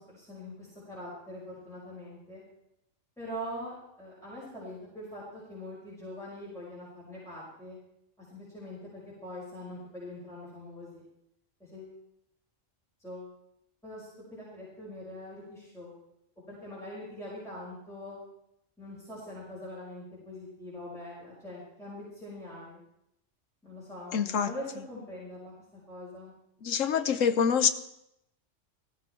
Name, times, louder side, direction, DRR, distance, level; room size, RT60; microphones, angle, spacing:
voice 1, 0.0-2.4 3.2-7.8 8.3-8.9 9.2-11.0 11.6-12.0 13.0-13.3 13.8-15.9 16.5-18.2 18.8-22.8 23.6-25.5 25.9-26.3, left 1 dB, ahead, -8 dB, 5.6 m, -43 dB
voice 2, 24.1-24.5 26.6-27.7, left 7 dB, 85° left, 11 dB, 1.3 m, -25 dB
17.5 x 15.0 x 4.5 m, 0.80 s
omnidirectional pair, 1.3 m